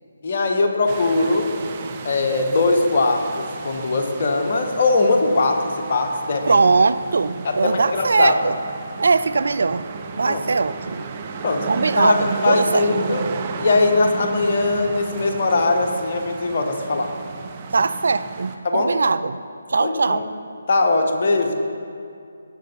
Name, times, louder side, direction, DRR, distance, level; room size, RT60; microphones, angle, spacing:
voice 1, 0.2-1.5 2.0-6.6 7.4-8.3 10.3-10.4 11.4-13.3 13.6-17.1 18.6-18.9 19.8-20.2 20.7-21.6, left 3 dB, 45° left, 3 dB, 1.2 m, -20 dB
sound 1, 0.9-18.6, right 5 dB, 30° right, 0.8 m, -33 dB
voice 2, 6.5-8.5 9.0-9.9 10.2-11.1 11.7-12.9 17.7-19.4 19.7-20.3, right 4 dB, 65° right, 14 dB, 0.4 m, -20 dB
17.5 x 6.5 x 4.5 m, 2.4 s
figure-of-eight pair, 150°, 0 cm